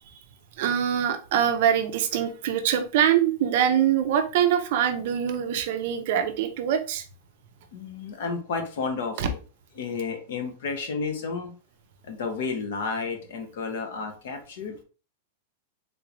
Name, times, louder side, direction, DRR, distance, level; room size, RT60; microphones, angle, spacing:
voice 1, 0.6-7.0 9.2-9.3, right 9 dB, 45° right, 8 dB, 0.5 m, -24 dB
voice 2, 7.7-9.4 9.8-11.5 12.0-14.8, left 4 dB, 55° left, 6 dB, 0.9 m, -31 dB
3.6 x 3.0 x 2.5 m, 0.36 s
supercardioid pair, 175°, 0 cm